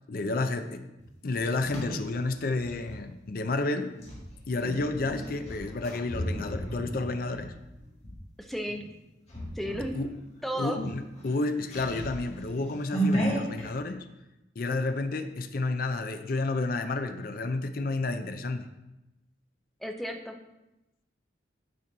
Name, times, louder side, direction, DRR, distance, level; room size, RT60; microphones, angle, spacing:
voice 1, 0.1-0.8 1.2-3.9 4.5-7.5 9.9-10.1 10.5-14.0 14.6-18.7, left 3 dB, 50° left, 8 dB, 0.5 m, -31 dB
sound 1, 1.0-3.0 3.9-8.2 8.7-8.9 9.3-10.0 10.3-10.4 10.7-13.7, right 1 dB, 35° left, 1.7 m, -34 dB
voice 2, 8.4-8.8 9.6-10.0 10.4-10.8 19.8-20.4, equal, ahead, 4 dB, 0.5 m, -33 dB
9.4 x 4.4 x 3.9 m, 0.97 s
head